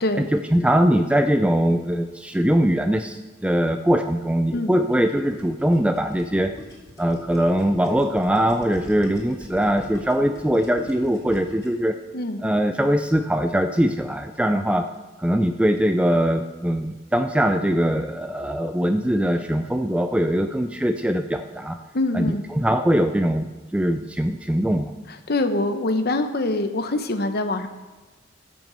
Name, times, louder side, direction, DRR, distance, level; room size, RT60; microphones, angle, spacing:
voice 1, 0.1-6.5 7.0-12.0 12.4-14.9 15.2-21.8 22.1-24.9, equal, 5° right, 7 dB, 0.4 m, -22 dB
Gurgling, 4.7-11.8, equal, 15° left, 3.0 m, -40 dB
voice 2, 21.9-22.4 25.3-27.7, left 2 dB, 55° left, 7 dB, 0.9 m, -24 dB
14.0 x 6.1 x 6.8 m, 1.2 s
head